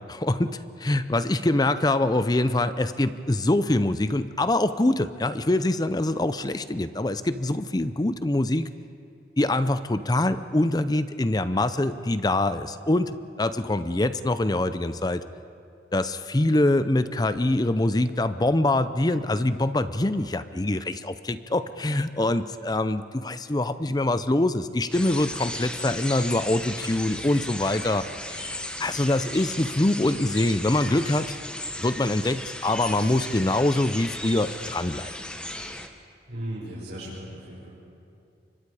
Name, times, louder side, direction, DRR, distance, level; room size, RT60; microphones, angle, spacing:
voice 1, 0.1-8.7 9.4-13.1 13.4-15.2 15.9-28.5 28.8-31.4 31.8-35.1, left 1 dB, 20° left, 12 dB, 0.6 m, -24 dB
sound 1, 24.9-35.9, left 1 dB, 5° left, 1.2 m, -36 dB
voice 2, 36.3-37.7, right 1 dB, 75° right, -8 dB, 5.9 m, -36 dB
29.5 x 25.0 x 4.9 m, 2.5 s
head